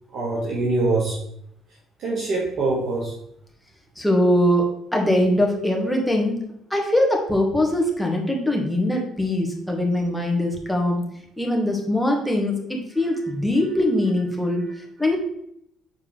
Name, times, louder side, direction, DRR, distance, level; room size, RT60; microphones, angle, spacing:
voice 1, 0.1-1.2 2.0-3.1 14.6-14.7, right 2 dB, 60° right, -5 dB, 1.9 m, -24 dB
voice 2, 4.0-6.4 6.7-11.1 11.4-14.7 15.0-15.2, left 1 dB, 5° left, 0 dB, 1.8 m, -22 dB
7.4 x 4.4 x 3.5 m, 0.73 s
supercardioid pair, 80°, 0 cm